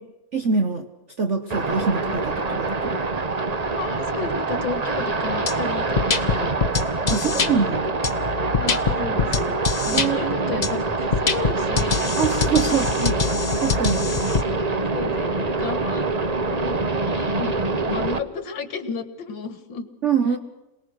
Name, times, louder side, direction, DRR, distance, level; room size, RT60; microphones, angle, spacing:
voice 1, 0.3-0.9 1.2-3.0 7.1-7.9 9.9-10.4 12.2-12.9 13.6-14.1 20.0-20.4, right 5 dB, 45° right, 7 dB, 1.2 m, -24 dB
sound 1, 1.5-18.2, right 3 dB, 30° right, 0.9 m, -25 dB
voice 2, 3.7-6.5 7.1-7.8 8.5-12.1 12.6-13.1 14.1-14.2 14.9-16.1 16.4-19.9, left 5 dB, 75° left, 11 dB, 2.4 m, -33 dB
sound 2, 5.5-5.6 6.0-7.5 8.0-10.1 10.6-10.7 11.1-14.4, left 5 dB, 35° left, 0.6 m, -24 dB
27.0 x 19.5 x 6.4 m, 1.0 s
omnidirectional pair, 2.1 m